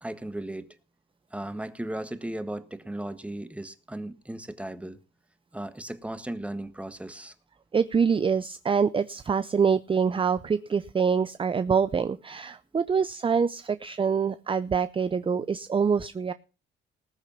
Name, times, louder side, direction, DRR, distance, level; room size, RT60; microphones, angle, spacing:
voice 1, 0.0-0.7 1.3-5.0 5.5-7.3, right 1 dB, 5° right, 1.5 m, -36 dB
voice 2, 7.7-16.3, right 6 dB, 25° right, 0.6 m, -25 dB
19.5 x 6.6 x 5.7 m
cardioid pair, 90°, 20 cm